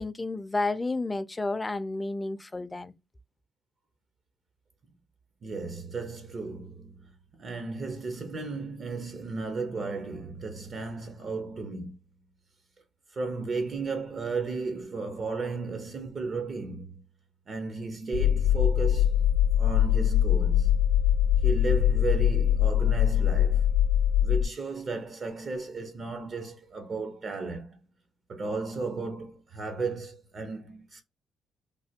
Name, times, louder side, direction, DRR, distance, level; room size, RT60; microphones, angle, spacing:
voice 1, 0.0-2.9, left 2 dB, 20° left, 0.4 m, -31 dB
voice 2, 5.4-12.0 13.1-17.0 17.5-19.2 19.6-20.7 21.4-23.7 24.2-27.8 28.3-31.0, right 4 dB, 45° right, 0.6 m, -34 dB
sound 1, 18.1-24.5, left 10 dB, 70° left, 0.6 m, -23 dB
3.2 x 2.1 x 2.7 m
cardioid pair, 90°, 0 cm